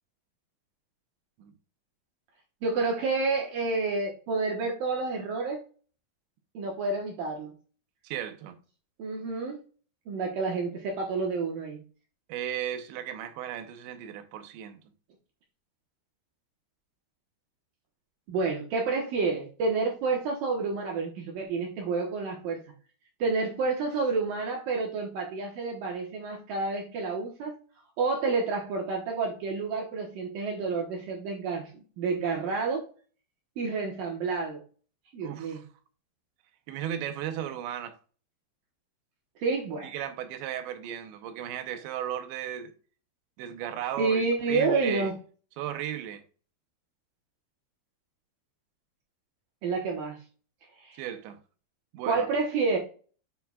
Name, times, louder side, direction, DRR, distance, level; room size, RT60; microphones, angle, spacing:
voice 1, 2.6-5.6 6.5-7.5 9.0-9.6 10.1-11.8 18.3-22.6 23.2-27.6 28.0-32.9 33.6-34.6 35.1-35.6 39.4-39.9 44.0-45.1 49.6-50.2 50.8-51.0 52.1-52.8, right 4 dB, 70° right, 2.3 m, -29 dB
voice 2, 8.0-8.6 12.3-14.8 35.2-35.7 36.7-38.0 39.8-42.7 43.4-44.2 44.5-45.1 45.6-46.2 51.0-51.4 51.9-52.3, right 10 dB, 85° right, 3.0 m, -35 dB
9.6 x 5.7 x 2.3 m
omnidirectional pair, 5.1 m